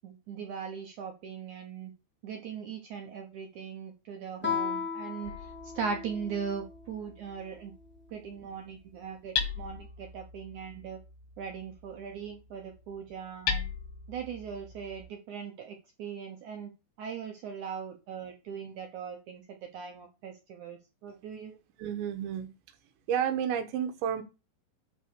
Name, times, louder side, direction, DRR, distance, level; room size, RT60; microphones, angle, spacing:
voice 1, 0.0-1.9 2.2-7.7 8.1-11.0 11.4-13.7 14.1-16.7 17.0-21.6, right 6 dB, 75° right, 3 dB, 1.8 m, -39 dB
Guitar, 4.4-6.9, left 6 dB, 10° left, 0.5 m, -35 dB
Hammer, 5.3-15.0, left 7 dB, 80° left, 4.1 m, -40 dB
voice 2, 21.8-22.5 23.1-24.2, right 9 dB, 90° right, 9 dB, 3.5 m, -30 dB
11.0 x 4.5 x 6.6 m, 0.29 s
omnidirectional pair, 5.1 m